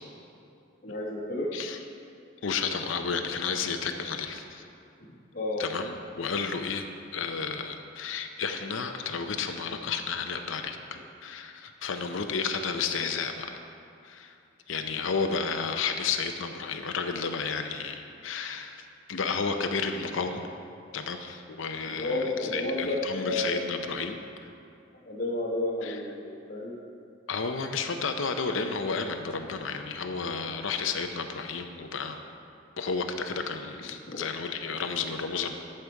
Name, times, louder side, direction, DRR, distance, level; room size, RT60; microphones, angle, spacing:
voice 1, 0.8-1.5 5.0-5.1 5.3-5.6 21.8-23.6 25.0-26.7 34.1-34.2, left 1 dB, 50° left, -7 dB, 1.4 m, -31 dB
voice 2, 2.4-4.6 5.6-13.6 14.0-14.3 14.7-20.4 20.9-24.2 25.8-26.0 27.3-32.3 32.8-35.5, left 5 dB, 85° left, 5 dB, 0.6 m, -32 dB
12.0 x 6.7 x 4.6 m, 2.6 s
head